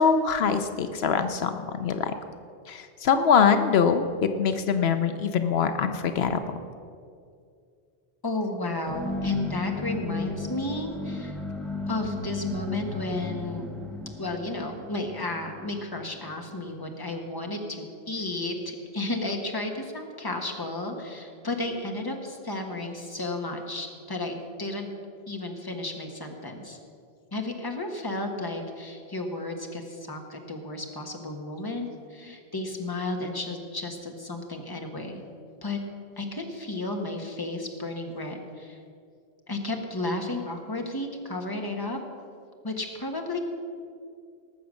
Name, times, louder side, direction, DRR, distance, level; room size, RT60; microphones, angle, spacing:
voice 1, 0.0-2.1 2.7-6.4, left 6 dB, 80° left, 9 dB, 0.9 m, -23 dB
voice 2, 8.2-11.4 11.9-13.7 14.2-24.9 25.3-26.8 27.3-35.2 35.6-35.8 36.2-38.8 39.5-42.0 42.6-43.4, left 2 dB, 20° left, 3 dB, 1.4 m, -33 dB
sound 1, 8.9-16.6, left 2 dB, ahead, 0.9 m, -35 dB
19.0 x 7.0 x 6.3 m, 2.3 s
omnidirectional pair, 1.0 m